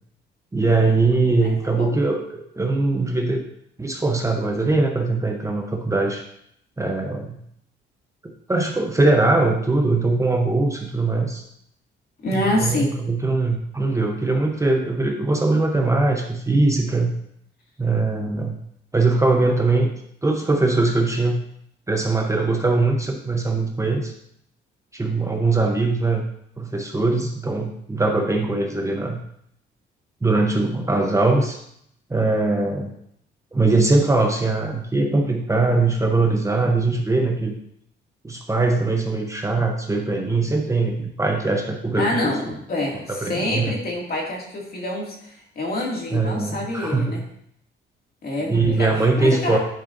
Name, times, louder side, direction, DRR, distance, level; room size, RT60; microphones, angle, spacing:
voice 1, 0.5-3.4 3.8-6.2 6.8-7.4 8.5-11.4 12.3-17.1 17.8-18.6 18.9-19.9 20.2-21.4 21.9-24.1 24.9-26.3 26.6-29.2 30.2-31.6 32.1-32.9 33.5-37.5 38.2-42.3 43.1-43.8 46.1-47.2 48.5-49.6, right 3 dB, 15° right, 2 dB, 0.9 m, -21 dB
voice 2, 1.4-2.0 12.2-13.0 42.0-47.2 48.2-48.9 49.2-49.6, left 1 dB, 50° left, -2 dB, 2.3 m, -26 dB
10.5 x 4.8 x 2.6 m, 0.72 s
cardioid pair, 90°, 20 cm